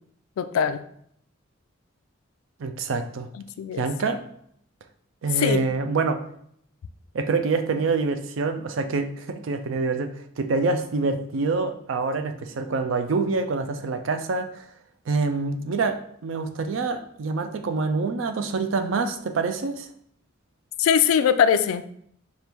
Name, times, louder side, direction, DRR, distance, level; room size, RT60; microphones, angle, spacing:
voice 1, 0.4-0.8 3.6-3.8 5.4-5.6 20.8-21.8, left 7 dB, 85° left, 11 dB, 0.3 m, -21 dB
voice 2, 2.6-3.3 3.8-4.2 5.2-6.2 7.1-10.1 10.4-14.6 15.1-19.9, right 4 dB, 65° right, 8 dB, 0.4 m, -26 dB
4.5 x 2.5 x 3.5 m, 0.68 s
head